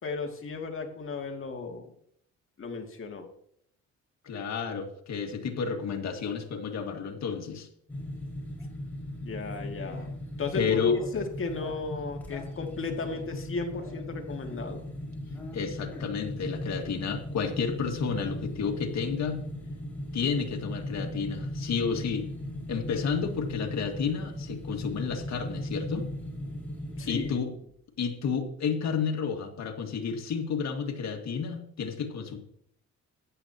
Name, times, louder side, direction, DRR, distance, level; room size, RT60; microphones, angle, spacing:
voice 1, 0.0-1.9 2.6-3.3 9.2-10.1 10.4-14.8 27.0-27.3, left 4 dB, 45° left, 3 dB, 2.3 m, -34 dB
voice 2, 4.2-7.7 10.5-11.0 15.5-19.4 20.1-22.3 22.7-26.1 27.1-27.5 28.0-32.4, left 6 dB, 65° left, 4 dB, 2.1 m, -31 dB
sound 1, 7.9-27.3, left 1 dB, 5° left, 5.2 m, -38 dB
14.5 x 10.5 x 2.9 m, 0.68 s
cardioid pair, 90°, 30 cm